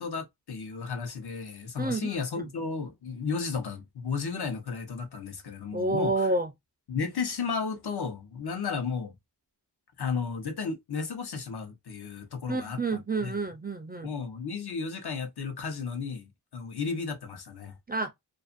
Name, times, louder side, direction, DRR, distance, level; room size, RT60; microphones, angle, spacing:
voice 1, 0.0-6.3 6.9-9.1 10.0-13.3 14.0-17.7, left 5 dB, 65° left, 0.9 m, -34 dB
voice 2, 1.8-2.1 2.4-2.5 5.7-6.5 12.5-14.1 17.9-18.1, right 2 dB, 25° right, 0.4 m, -29 dB
2.5 x 2.5 x 2.4 m
wide cardioid pair, 125°, 41 cm